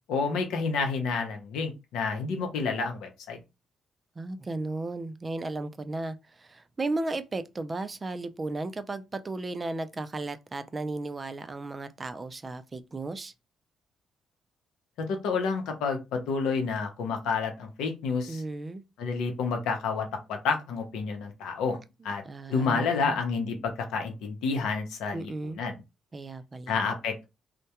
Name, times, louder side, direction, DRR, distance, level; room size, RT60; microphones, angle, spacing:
voice 1, 0.1-3.4 15.0-18.4 19.0-21.8 22.0-22.2 22.5-25.8 26.7-27.2, left 4 dB, 85° left, 0.7 m, -29 dB
voice 2, 4.2-13.3 18.3-18.8 22.0-23.2 25.1-25.6 26.1-26.8, right 2 dB, 30° right, 0.3 m, -35 dB
2.2 x 2.1 x 2.8 m
cardioid pair, 90°, 0 cm